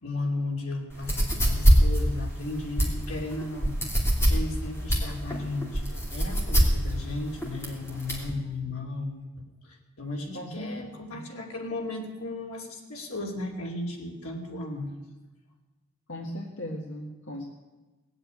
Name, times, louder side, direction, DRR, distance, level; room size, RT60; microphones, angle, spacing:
voice 1, 0.0-3.8 4.3-5.8 6.1-9.2 9.6-14.9, left 2 dB, 80° left, 1 dB, 2.9 m, -35 dB
sound 1, 0.9-8.3, right 1 dB, 10° left, 2.7 m, -24 dB
voice 2, 10.3-11.2 16.1-17.4, equal, 60° left, -1 dB, 1.6 m, -38 dB
18.0 x 8.0 x 9.5 m, 1.2 s
head